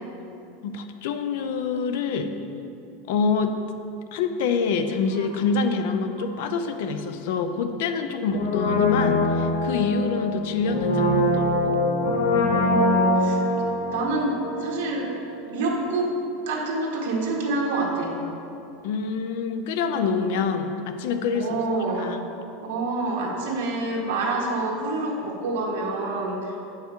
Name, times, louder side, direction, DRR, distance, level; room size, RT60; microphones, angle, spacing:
voice 1, 0.6-2.3 3.1-3.6 4.1-11.8 18.8-21.6 22.0-22.2, left 5 dB, 60° left, 8 dB, 0.6 m, -26 dB
Brass instrument, 8.3-15.2 15.4-15.5, left 2 dB, 85° left, 1.0 m, -23 dB
voice 2, 12.4-13.4 13.9-15.1 15.4-16.2 16.5-18.2 21.3-22.1 22.6-26.6, right 2 dB, 70° right, -1 dB, 1.6 m, -27 dB
8.8 x 5.7 x 4.6 m, 2.7 s
supercardioid pair, 175°, 0 cm